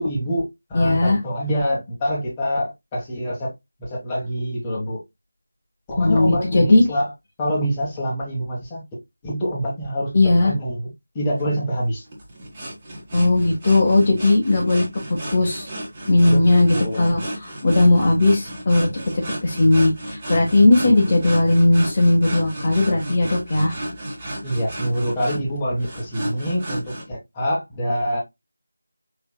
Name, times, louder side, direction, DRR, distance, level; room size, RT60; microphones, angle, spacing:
voice 1, 0.0-3.5 3.8-5.0 5.9-7.1 7.4-8.8 9.2-10.1 10.4-10.9 11.1-12.0 16.3-16.4 16.7-17.1 20.6-21.2 24.4-28.2, equal, 15° left, 1.4 m, -25 dB
voice 2, 0.7-1.2 6.0-6.8 10.1-10.5 13.1-14.8 15.3-15.7 16.1-17.2 17.6-18.9 19.4-23.8, left 2 dB, 30° left, 1.3 m, -17 dB
sound 1, 11.4-27.0, right 1 dB, 25° right, 1.6 m, -33 dB
5.6 x 3.4 x 2.2 m
figure-of-eight pair, 165°, 0 cm